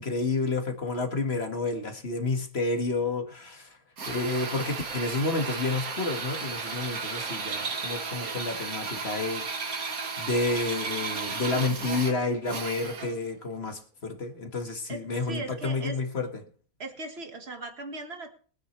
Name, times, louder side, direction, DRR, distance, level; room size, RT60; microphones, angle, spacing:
voice 1, 0.0-3.7 4.1-9.4 10.2-16.3, left 3 dB, 45° left, 4 dB, 2.0 m, -30 dB
Drill, 4.0-13.2, right 4 dB, 80° right, 2.2 m, -34 dB
voice 2, 8.1-8.5 14.9-16.0 16.8-18.3, right 2 dB, 45° right, 5 dB, 2.0 m, -39 dB
22.5 x 9.6 x 3.3 m, 0.43 s
omnidirectional pair, 1.5 m